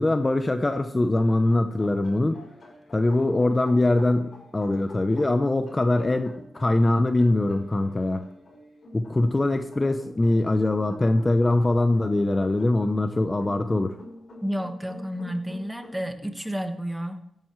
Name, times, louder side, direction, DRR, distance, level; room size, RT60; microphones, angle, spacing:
voice 1, 0.0-2.4 2.9-8.2 8.9-14.0, left 2 dB, 20° left, 7 dB, 0.7 m, -22 dB
sound 1, 1.1-16.1, left 2 dB, 50° left, 5.5 m, -47 dB
voice 2, 14.4-17.2, equal, 5° right, 6 dB, 1.3 m, -31 dB
16.5 x 10.5 x 3.2 m, 0.79 s
wide cardioid pair, 110°, 0 cm